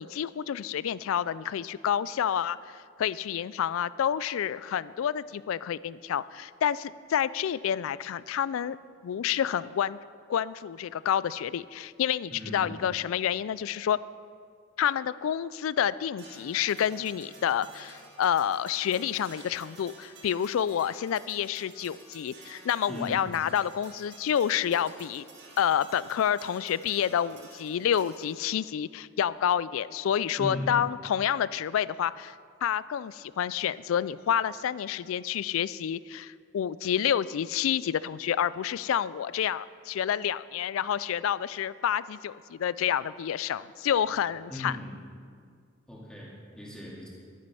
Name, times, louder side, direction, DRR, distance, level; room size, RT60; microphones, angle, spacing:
voice 1, 0.0-8.8 9.0-10.0 10.3-14.0 14.8-25.2 25.6-32.3 32.6-44.7, left 9 dB, 75° left, 18 dB, 0.3 m, -29 dB
voice 2, 12.3-12.8 22.9-23.2 30.4-30.7 44.5-45.0 45.9-47.1, left 1 dB, 5° left, -5 dB, 2.2 m, -38 dB
sound 1, 16.2-28.7, right 3 dB, 55° right, 1.8 m, -52 dB
12.0 x 9.4 x 5.6 m, 2.1 s
head